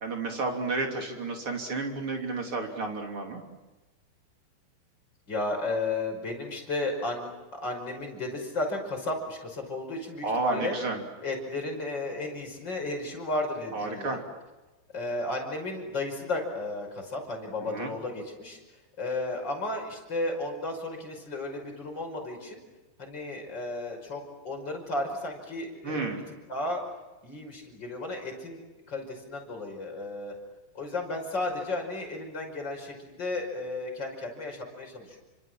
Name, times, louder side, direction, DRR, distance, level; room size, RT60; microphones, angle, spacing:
voice 1, 0.0-3.4 10.2-11.0 13.7-14.2 17.6-17.9 25.8-26.2, right 3 dB, 35° right, 2 dB, 3.6 m, -31 dB
voice 2, 5.3-10.8 11.2-14.2 14.9-18.6 19.0-22.6 23.0-26.2 26.5-26.8 27.2-30.3 30.7-35.2, left 2 dB, 25° left, 2 dB, 5.8 m, -33 dB
29.5 x 25.5 x 7.7 m, 1.1 s
omnidirectional pair, 4.9 m